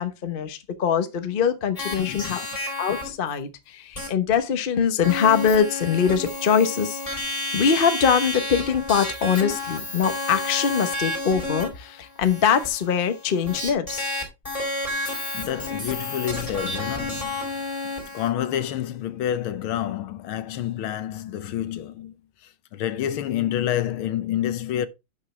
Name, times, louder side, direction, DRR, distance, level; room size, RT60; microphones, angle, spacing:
voice 1, 0.0-2.4 2.8-14.1, left 7 dB, 45° left, 0.7 m, -23 dB
sound 1, 1.8-3.1 4.0-4.1 4.3-4.4 5.0-18.3, left 2 dB, 15° left, 3.2 m, -31 dB
voice 2, 2.0-2.4 15.3-17.7 18.1-22.2 22.7-24.9, left 11 dB, 75° left, 1.6 m, -28 dB
11.0 x 6.3 x 3.2 m
omnidirectional pair, 2.4 m